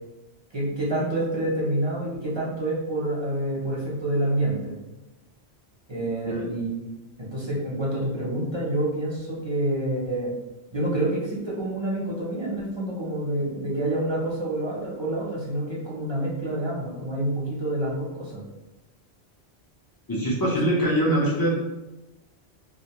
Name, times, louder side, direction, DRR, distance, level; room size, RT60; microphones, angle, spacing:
voice 1, 0.5-4.7 5.9-6.9 7.3-10.3 10.7-18.4 20.4-20.6, right 1 dB, 30° right, -6 dB, 0.6 m, -27 dB
voice 2, 20.1-21.5, right 1 dB, 30° left, -5 dB, 0.4 m, -23 dB
2.5 x 2.1 x 2.8 m, 1.0 s
omnidirectional pair, 1.1 m